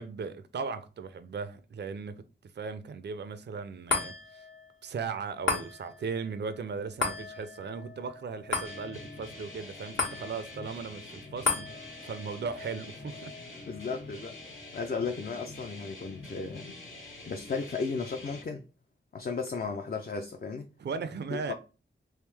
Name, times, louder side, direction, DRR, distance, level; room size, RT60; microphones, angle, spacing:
voice 1, 0.0-4.4 4.8-13.6 20.8-21.5, right 5 dB, 60° right, 0.4 m, -37 dB
sound 1, 3.9-16.5 16.9-17.0, left 4 dB, 75° left, 1.3 m, -37 dB
sound 2, 8.6-18.4, left 2 dB, 90° left, 1.5 m, -46 dB
voice 2, 13.7-14.3 14.7-16.8 17.3-18.6 19.1-20.7 21.3-21.5, left 4 dB, 50° left, 0.4 m, -35 dB
3.5 x 2.7 x 3.3 m
wide cardioid pair, 75°, 20 cm